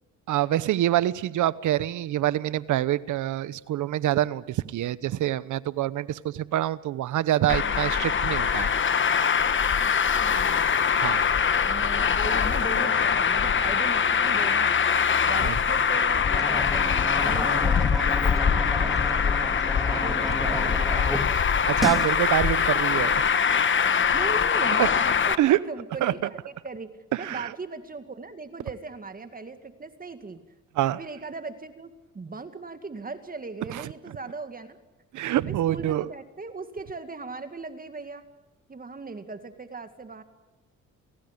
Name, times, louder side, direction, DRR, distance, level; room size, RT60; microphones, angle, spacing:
voice 1, 0.3-8.7 10.9-11.3 15.4-15.6 21.7-23.7 24.8-24.9 25.4-25.6 26.0-26.1 27.1-27.5 30.8-31.0 33.7-33.9 35.1-36.1, right 13 dB, 75° right, 18 dB, 1.0 m, -26 dB
voice 2, 7.4-8.2 9.8-10.8 11.6-16.9 17.2-19.6 20.0-21.4 22.4-22.8 24.1-26.9 27.2-30.4 31.0-34.8 35.4-38.2 38.7-40.2, right 4 dB, 30° right, 9 dB, 2.1 m, -39 dB
Traffic noise roadway noise, 7.5-25.3, left 7 dB, 40° left, 1.3 m, -23 dB
sound 1, 16.1-21.2 21.5-22.1, equal, ahead, 3.4 m, -33 dB
28.0 x 18.0 x 8.2 m, 1.1 s
cardioid pair, 90°, 30 cm